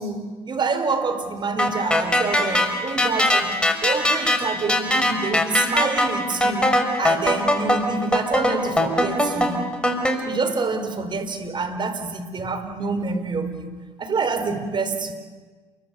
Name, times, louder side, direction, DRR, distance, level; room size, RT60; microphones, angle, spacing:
voice 1, 0.0-9.6 10.2-15.2, right 4 dB, 35° right, 4.4 m, -27 dB
sound 1, 1.6-10.2, left 1 dB, 5° left, 5.3 m, -21 dB
29.0 x 22.5 x 8.3 m
supercardioid pair, 80°, 13 cm